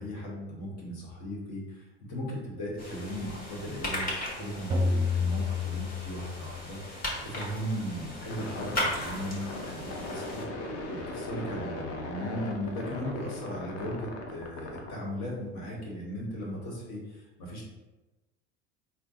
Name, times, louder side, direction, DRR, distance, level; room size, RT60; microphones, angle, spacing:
voice 1, 0.0-10.4 10.9-17.7, equal, 60° left, -2 dB, 1.3 m, -37 dB
sound 1, 2.8-10.5, left 1 dB, 25° left, 1.4 m, -37 dB
sound 2, 4.7-6.6, left 4 dB, 15° right, 0.6 m, -29 dB
sound 3, 8.2-14.9, left 2 dB, 45° left, 0.8 m, -38 dB
3.7 x 2.1 x 3.6 m, 1.1 s
hypercardioid pair, 70°, 33 cm